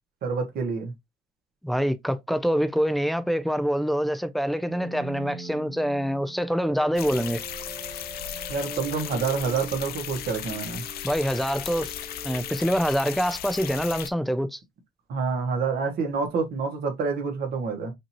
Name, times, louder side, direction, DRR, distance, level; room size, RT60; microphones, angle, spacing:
voice 1, 0.2-0.9 8.5-10.8 15.1-17.9, right 5 dB, 65° right, 1.6 m, -27 dB
voice 2, 1.6-7.4 11.0-11.9 12.2-14.6, equal, ahead, 0.4 m, -25 dB
sound 1, 4.6-13.6, right 2 dB, 30° right, 1.9 m, -43 dB
sound 2, 7.0-14.1, left 10 dB, 65° left, 0.6 m, -36 dB
5.1 x 2.8 x 3.0 m
cardioid pair, 110°, 17 cm